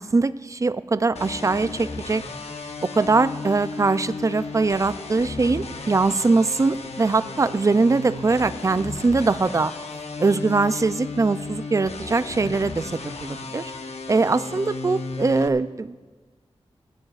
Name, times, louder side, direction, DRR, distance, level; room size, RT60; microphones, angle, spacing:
voice 1, 0.0-2.2 2.8-9.7 10.2-12.9 13.2-13.7 14.1-16.1, right 3 dB, 30° right, 15 dB, 0.4 m, -22 dB
sound 1, 1.2-15.5, left 3 dB, 75° left, 0.9 m, -34 dB
18.5 x 14.5 x 2.4 m, 1.3 s
wide cardioid pair, 105°, 11 cm